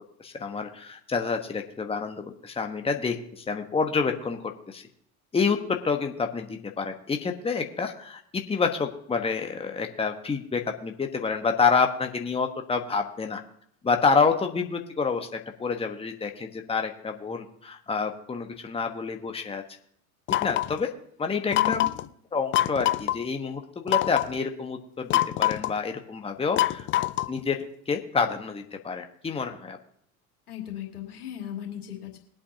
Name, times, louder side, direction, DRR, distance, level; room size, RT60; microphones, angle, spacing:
voice 1, 0.2-4.8 5.3-13.4 13.8-15.3 15.6-19.6 20.4-20.9 21.2-21.8 22.3-26.9 27.3-29.8, left 5 dB, 15° left, 5 dB, 1.2 m, -28 dB
sound 1, 20.3-20.8 21.5-22.1 22.5-23.2 23.9-24.3 25.1-25.8 26.6-27.4, left 14 dB, 30° left, 0.4 m, -24 dB
voice 2, 21.5-21.9 30.5-32.2, left 11 dB, 85° left, 0 dB, 2.5 m, -36 dB
21.5 x 8.5 x 2.8 m, 0.66 s
figure-of-eight pair, 75°, 44 cm